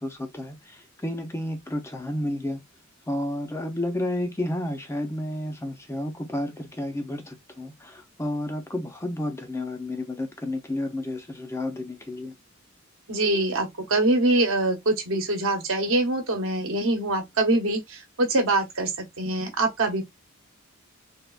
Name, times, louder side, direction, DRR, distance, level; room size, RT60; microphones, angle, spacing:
voice 1, 0.0-2.6 3.1-12.3, left 1 dB, 15° left, 0.5 m, -31 dB
voice 2, 13.1-20.0, right 2 dB, 70° right, 0.9 m, -24 dB
3.5 x 2.3 x 2.3 m
head